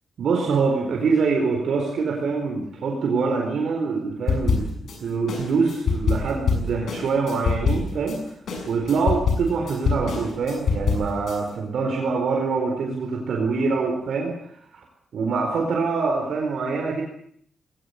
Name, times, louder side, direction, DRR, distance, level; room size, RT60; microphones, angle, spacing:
voice 1, 0.2-4.7 5.0-8.3 8.7-14.8 15.1-17.0, right 4 dB, 65° right, 1 dB, 4.4 m, -24 dB
sound 1, 4.3-5.0 5.3-8.2 8.5-11.4, left 5 dB, 70° left, 7.0 m, -24 dB
20.5 x 19.0 x 8.2 m, 0.64 s
wide cardioid pair, 175°, 0 cm